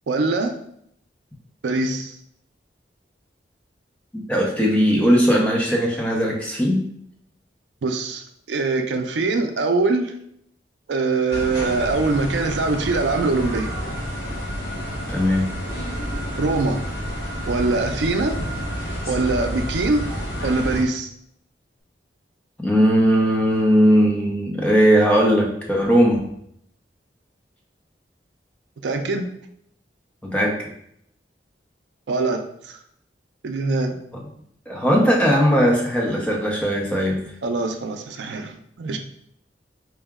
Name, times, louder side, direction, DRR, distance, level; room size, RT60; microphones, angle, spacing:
voice 1, 0.1-0.5 1.6-2.2 7.8-10.1 10.9-13.8 16.4-16.8 17.5-18.4 19.1-20.1 20.4-21.1 28.8-29.3 32.1-32.8 33.4-34.0 37.4-39.0, right 3 dB, 80° right, 6 dB, 0.4 m, -23 dB
voice 2, 4.1-6.9 15.1-15.6 22.6-26.3 30.2-30.7 34.7-37.3, equal, 5° left, -2 dB, 0.6 m, -19 dB
sound 1, 11.3-20.8, equal, 55° left, 1.3 m, -29 dB
4.6 x 2.1 x 3.5 m, 0.71 s
head